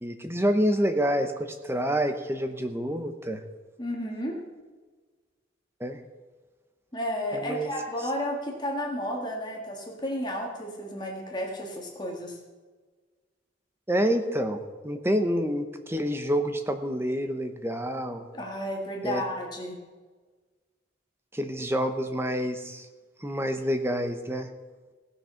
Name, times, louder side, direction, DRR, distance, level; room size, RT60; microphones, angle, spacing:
voice 1, 0.0-3.4 5.8-6.0 7.3-7.7 13.9-18.3 19.0-19.2 21.3-22.9 23.2-24.5, equal, 15° right, 7 dB, 0.8 m, -28 dB
voice 2, 3.8-4.4 6.9-12.4 18.3-19.8, equal, 25° left, -1 dB, 1.8 m, -32 dB
17.0 x 6.3 x 5.8 m, 1.4 s
head